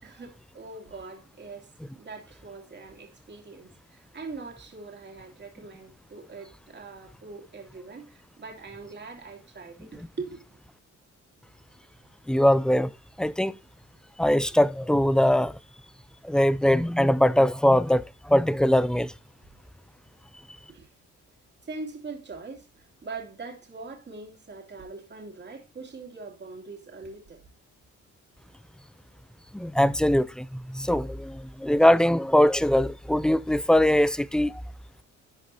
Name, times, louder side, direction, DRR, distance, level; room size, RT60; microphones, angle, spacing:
voice 1, 0.0-10.4 20.7-20.9 21.6-27.4, right 3 dB, 35° right, 2.7 m, -42 dB
voice 2, 12.3-12.9 13.2-13.5 14.2-15.5 16.2-19.1 29.5-34.6, left 1 dB, ahead, 0.4 m, -22 dB
11.5 x 5.2 x 2.7 m
cardioid pair, 90°, 30 cm